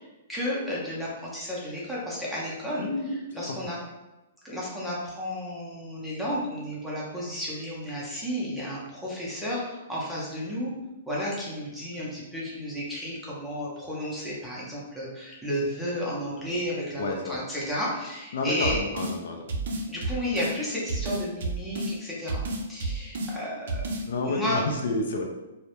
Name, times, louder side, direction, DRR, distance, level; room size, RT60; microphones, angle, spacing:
voice 1, 0.3-3.8 4.4-10.7 11.1-18.8 19.9-22.4 22.7-23.8 24.2-24.6, equal, ahead, -7 dB, 0.5 m, -32 dB
voice 2, 2.8-3.2 17.0-17.4 18.3-19.5 24.1-25.2, left 2 dB, 65° left, 2 dB, 0.4 m, -29 dB
sound 1, 18.6-19.2 19.5-20.6 20.9-21.9 22.3-23.3 23.7-24.0, right 2 dB, 65° right, 0.4 m, -30 dB
2.2 x 2.0 x 2.8 m, 1.0 s
hypercardioid pair, 160°, 0 cm